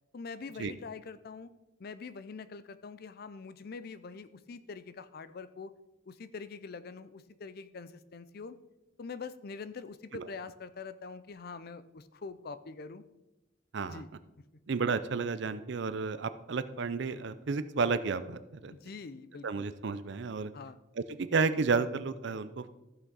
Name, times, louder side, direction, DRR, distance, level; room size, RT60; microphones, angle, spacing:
voice 1, 0.1-1.5 1.8-5.7 6.1-8.6 9.0-13.0 13.9-14.1 14.4-14.5 18.7-19.7 20.5-20.8, left 4 dB, 50° left, 14 dB, 0.4 m, -44 dB
voice 2, 14.7-18.7 19.4-20.5 21.0-22.7, right 4 dB, 60° right, 13 dB, 0.5 m, -32 dB
14.5 x 5.8 x 4.0 m, 1.0 s
head